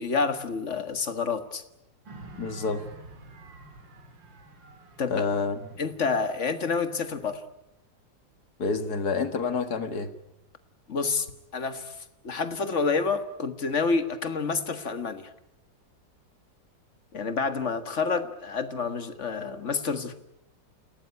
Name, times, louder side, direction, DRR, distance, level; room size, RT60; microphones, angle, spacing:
voice 1, 0.0-1.6 5.0-5.2 5.8-7.4 10.9-11.3 11.5-15.3 17.1-20.1, left 4 dB, 40° left, 10 dB, 1.8 m, -28 dB
sound 1, 2.0-7.3, right 3 dB, 80° right, 3.1 m, -49 dB
voice 2, 2.4-2.9 5.1-5.6 8.6-10.1, left 4 dB, 60° left, 9 dB, 2.2 m, -28 dB
28.5 x 17.5 x 9.9 m, 0.88 s
omnidirectional pair, 2.0 m